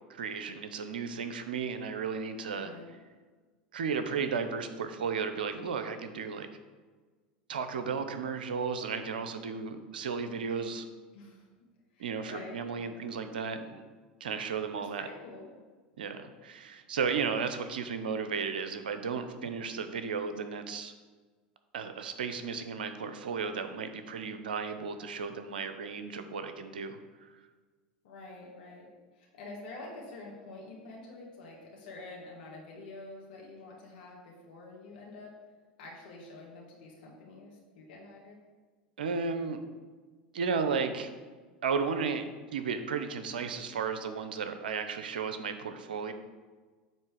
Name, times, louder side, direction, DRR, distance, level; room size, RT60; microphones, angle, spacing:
voice 1, 0.1-2.7 3.7-6.5 7.5-10.9 12.0-13.8 14.2-15.1 16.0-20.9 21.7-27.3 39.0-39.6 40.3-41.1 41.6-46.1, right 5 dB, 80° right, 9 dB, 0.7 m, -34 dB
voice 2, 2.5-2.9 11.1-11.7 11.9-13.1 14.8-15.5 28.0-35.3 35.8-38.4, left 2 dB, 70° left, -2 dB, 1.6 m, -47 dB
8.9 x 3.2 x 6.2 m, 1.4 s
hypercardioid pair, 85°, 5 cm